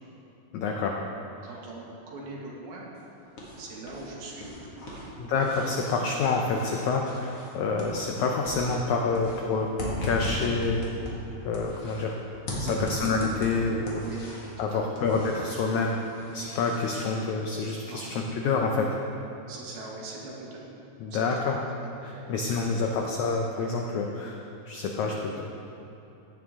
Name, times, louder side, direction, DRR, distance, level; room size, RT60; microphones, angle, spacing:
voice 1, 0.5-1.0 5.2-9.7 10.0-10.8 11.4-12.2 12.6-14.0 14.6-16.0 16.3-18.9 21.0-21.6 22.0-24.4 24.7-25.4, left 4 dB, 85° left, 1 dB, 1.6 m, -27 dB
voice 2, 1.4-2.9 3.6-5.0 12.6-12.8 14.0-14.2 14.6-14.9 17.9-18.0 19.5-20.7 21.1-21.6 22.1-22.3, right 2 dB, 75° right, -4 dB, 3.6 m, -42 dB
sound 1, 2.9-4.1 4.3-8.2 8.4-12.1 12.5-14.6 15.0-17.1, left 1 dB, 45° left, 2.4 m, -37 dB
15.5 x 9.8 x 3.7 m, 3.0 s
omnidirectional pair, 4.3 m